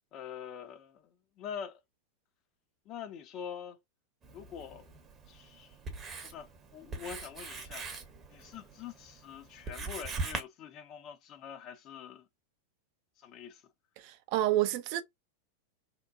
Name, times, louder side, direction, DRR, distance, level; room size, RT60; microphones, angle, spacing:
voice 1, 0.1-1.1 1.4-1.8 2.9-3.8 4.3-4.9 5.3-5.8 6.2-7.9 8.3-12.3 13.2-13.6, left 8 dB, 35° left, 0.5 m, -45 dB
Writing, 4.2-10.4, right 3 dB, 25° right, 0.7 m, -42 dB
voice 2, 14.0-15.0, right 14 dB, 45° right, 0.4 m, -29 dB
2.8 x 2.1 x 2.4 m
figure-of-eight pair, 90°, 0 cm